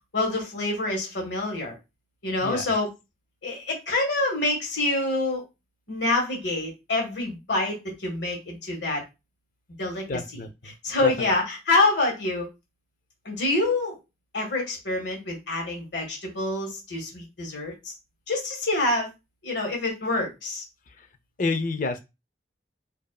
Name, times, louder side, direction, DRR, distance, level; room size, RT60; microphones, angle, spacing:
voice 1, 0.1-1.8 2.2-2.9 3.4-5.4 5.9-9.0 9.8-10.0 10.8-12.5 13.2-14.0 14.3-17.9 18.3-19.1 19.4-20.6, left 2 dB, 90° left, 1 dB, 1.5 m, -26 dB
voice 2, 10.1-10.7 11.0-11.3 21.0-21.1 21.4-22.0, left 3 dB, 50° left, 9 dB, 0.6 m, -29 dB
5.1 x 2.7 x 2.3 m, 0.24 s
head